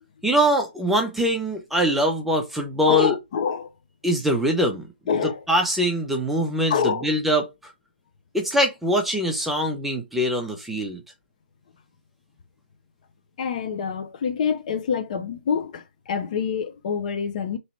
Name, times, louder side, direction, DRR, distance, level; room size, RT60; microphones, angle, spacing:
voice 1, 0.2-3.2 4.0-4.9 5.5-7.5 8.3-11.0, equal, 5° right, 0.7 m, -23 dB
voice 2, 2.9-3.7 5.1-5.4 6.7-7.1 13.4-17.6, left 7 dB, 45° left, 0.6 m, -26 dB
3.1 x 2.9 x 4.3 m
hypercardioid pair, 145°, 6 cm